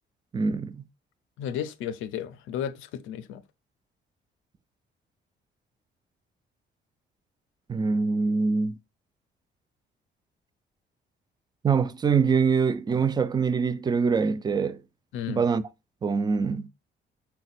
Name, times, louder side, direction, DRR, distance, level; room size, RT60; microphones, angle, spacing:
voice 1, 0.3-0.8 7.7-8.8 11.6-14.8 15.3-15.6 16.0-16.7, right 5 dB, 20° right, 0.3 m, -24 dB
voice 2, 1.4-3.4 15.1-15.5, left 9 dB, 85° left, 0.5 m, -33 dB
4.2 x 2.2 x 4.0 m
cardioid pair, 90°, 20 cm